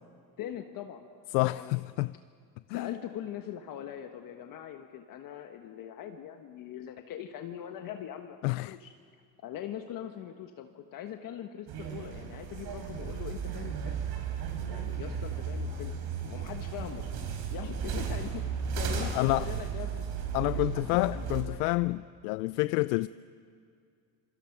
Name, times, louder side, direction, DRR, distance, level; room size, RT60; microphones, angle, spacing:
voice 1, 0.4-1.1 1.4-1.8 2.7-8.9 9.4-14.0 14.7-15.9 16.2-17.0 17.3-18.4 18.8-20.0 20.4-21.7, left 10 dB, 45° left, 1.3 m, -42 dB
voice 2, 1.3-2.1 2.7-2.9 8.4-8.8 19.1-19.5 20.3-23.1, left 21 dB, 80° left, 0.6 m, -28 dB
sound 1, 11.7-21.4, right 6 dB, 55° right, 4.1 m, -35 dB
26.5 x 25.0 x 6.0 m
cardioid pair, 135°, 47 cm